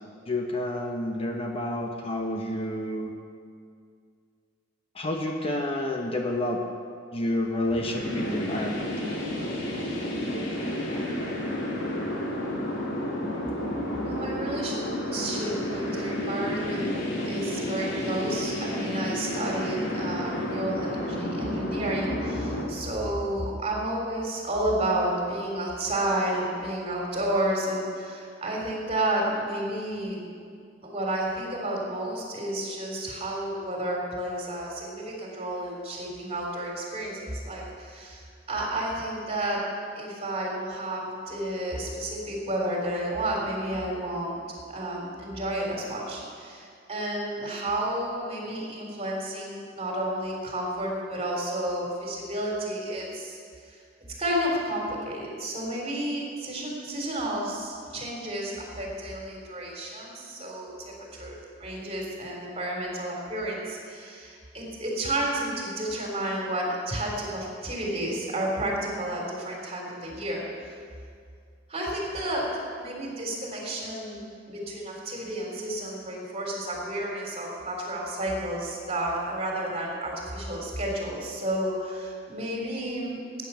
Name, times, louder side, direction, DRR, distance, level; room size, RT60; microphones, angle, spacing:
voice 1, 0.3-3.1 4.9-6.6 7.1-8.8, left 1 dB, 30° left, 2 dB, 1.1 m, -29 dB
sound 1, 7.6-22.6, left 1 dB, 85° left, 3.3 m, -31 dB
voice 2, 14.0-14.9 15.1-30.2 30.8-39.7 39.9-44.4 44.7-53.4 53.6-53.8 54.2-70.4 71.7-72.5 72.8-83.2, right 1 dB, 35° right, -1 dB, 3.6 m, -31 dB
15.0 x 9.7 x 7.0 m, 2.2 s
head